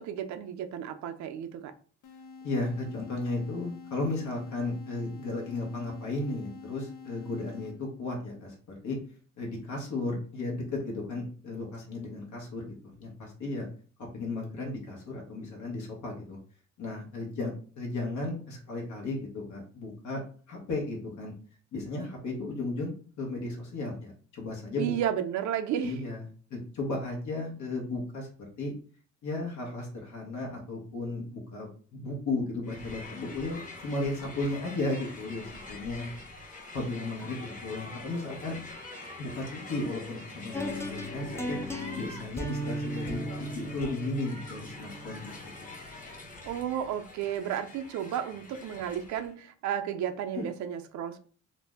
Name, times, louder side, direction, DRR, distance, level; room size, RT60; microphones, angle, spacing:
voice 1, 0.0-1.7 24.8-26.0 46.4-51.2, right 9 dB, 70° right, 0.5 m, -33 dB
sound 1, 2.0-8.1, left 4 dB, 90° left, 0.5 m, -47 dB
voice 2, 2.4-8.5 8.8-9.0 9.4-13.7 14.1-16.4 16.8-20.2 20.5-21.3 21.7-24.9 25.8-26.2 26.5-28.3 28.6-28.7 29.2-36.1 36.7-38.6 39.2-41.6 41.9-45.5 50.3-50.4, left 2 dB, 75° left, 1.0 m, -35 dB
Crowd, 32.6-49.3, left 2 dB, 25° left, 0.8 m, -45 dB
sound 2, 40.5-46.6, equal, 10° left, 0.4 m, -37 dB
2.6 x 2.0 x 3.4 m
cardioid pair, 90°, 30 cm